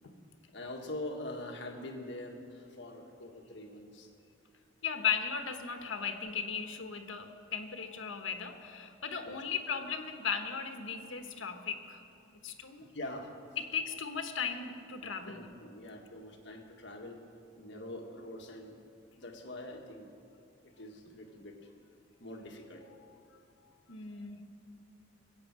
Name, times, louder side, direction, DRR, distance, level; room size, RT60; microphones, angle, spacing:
voice 1, 0.5-4.1 9.2-9.4 12.9-13.3 15.2-17.2 17.6-18.8 19.2-20.1 20.8-21.5 22.2-22.8, left 1 dB, 60° left, 2 dB, 1.6 m, -44 dB
voice 2, 4.8-12.0 12.3-12.9 13.6-15.5 23.9-24.4, left 6 dB, 85° left, 6 dB, 1.2 m, -37 dB
21.0 x 8.5 x 7.5 m, 2.5 s
head